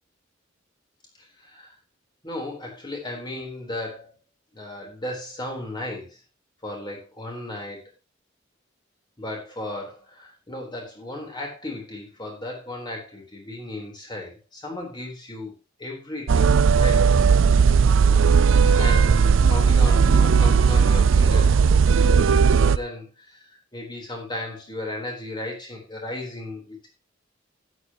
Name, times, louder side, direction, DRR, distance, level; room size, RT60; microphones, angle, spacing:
voice 1, 1.4-1.7 2.2-4.1 4.5-6.2 6.6-7.8 9.2-15.5 15.8-16.5 16.8-17.0 18.6-26.9, left 1 dB, 25° left, 0 dB, 4.0 m, -35 dB
sound 1, 16.3-22.8, right 5 dB, 85° right, 0.5 m, -17 dB
12.5 x 10.0 x 3.0 m, 0.28 s
head